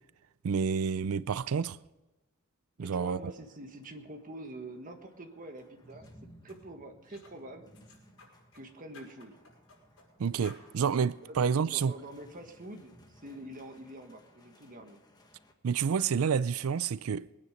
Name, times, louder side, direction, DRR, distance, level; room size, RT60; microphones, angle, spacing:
voice 1, 0.4-1.8 2.8-3.3 10.2-11.9 15.6-17.4, right 6 dB, 80° right, 0.4 m, -29 dB
voice 2, 2.8-6.1 6.4-7.7 8.5-9.4 11.3-12.9 13.2-15.0, right 1 dB, 40° right, 1.6 m, -46 dB
sound 1, 3.3-15.5, equal, 20° left, 1.5 m, -60 dB
sound 2, 5.9-6.1 6.5-6.6 7.1-7.4 7.7-8.7 8.9-10.1 10.4-10.7, left 3 dB, 75° left, 5.8 m, -55 dB
21.5 x 9.6 x 5.2 m
head